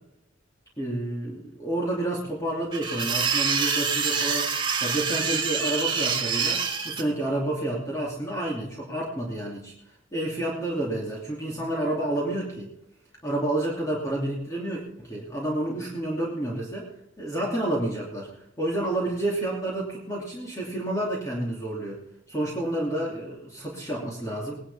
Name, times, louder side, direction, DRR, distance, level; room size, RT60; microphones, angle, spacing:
voice 1, 0.8-9.7 10.1-12.7 13.2-16.9 17.2-18.3 18.6-22.0 22.3-24.6, right 1 dB, 15° left, -4 dB, 2.8 m, -29 dB
sound 1, 2.7-7.0, right 5 dB, 25° right, 1.8 m, -26 dB
19.5 x 11.0 x 3.5 m, 0.82 s
head